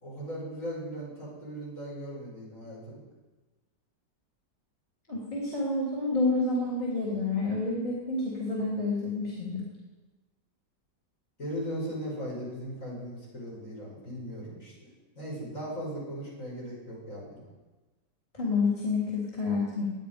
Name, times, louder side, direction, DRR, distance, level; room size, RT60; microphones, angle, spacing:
voice 1, 0.0-3.0 11.4-17.4, equal, 45° left, -5 dB, 5.7 m, -38 dB
voice 2, 5.1-9.7 18.3-19.9, left 3 dB, 25° left, -6 dB, 3.3 m, -29 dB
19.0 x 10.0 x 5.2 m, 1.2 s
omnidirectional pair, 1.8 m